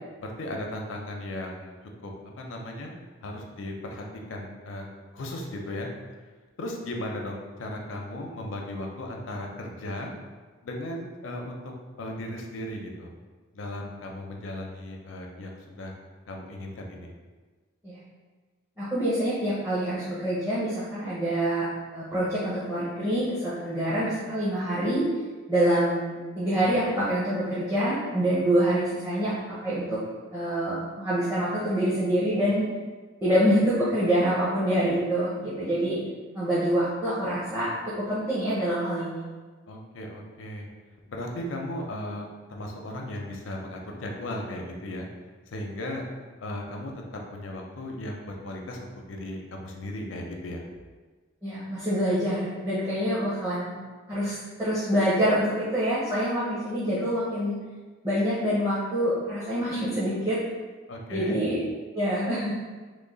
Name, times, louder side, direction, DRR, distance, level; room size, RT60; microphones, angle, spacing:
voice 1, 0.2-1.7 2.0-2.9 3.2-4.9 5.1-5.9 6.6-10.1 10.6-11.6 12.0-13.1 13.5-15.9 16.3-17.1 39.7-40.7 41.1-45.1 45.5-46.1 46.4-50.6 60.9-61.4, left 1 dB, 85° left, 1 dB, 0.5 m, -36 dB
voice 2, 18.8-25.1 25.5-30.0 30.3-32.6 33.2-36.0 36.3-39.2 51.4-53.7 54.1-57.6 58.0-60.4 61.1-61.6 61.9-62.5, right 1 dB, 15° right, -10 dB, 0.7 m, -26 dB
3.1 x 2.1 x 3.8 m, 1.4 s
head